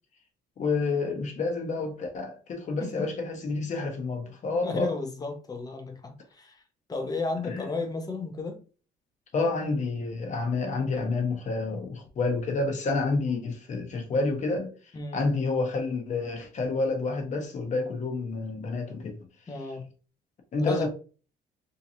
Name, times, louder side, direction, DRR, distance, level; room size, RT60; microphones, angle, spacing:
voice 1, 0.6-4.9 7.5-7.7 9.3-14.7 15.1-19.2 20.5-20.9, left 3 dB, 45° left, 1.1 m, -29 dB
voice 2, 4.6-6.6 6.9-8.6 14.9-15.2 19.5-19.9 20.6-20.9, left 3 dB, 20° left, 0.8 m, -34 dB
3.8 x 2.8 x 2.7 m
cardioid pair, 110°, 17 cm